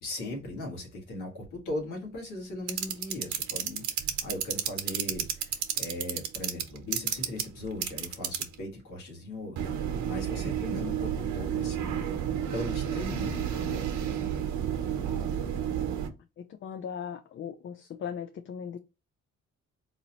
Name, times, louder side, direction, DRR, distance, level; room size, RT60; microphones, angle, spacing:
voice 1, 0.0-9.7 10.0-12.1 12.5-14.2, left 1 dB, 90° left, 1.8 m, -38 dB
sound 1, 2.7-8.6 9.6-16.1, right 9 dB, 75° right, 0.9 m, -31 dB
voice 2, 16.6-18.8, left 7 dB, 40° left, 0.4 m, -38 dB
4.0 x 2.8 x 2.9 m
cardioid pair, 90°, 30 cm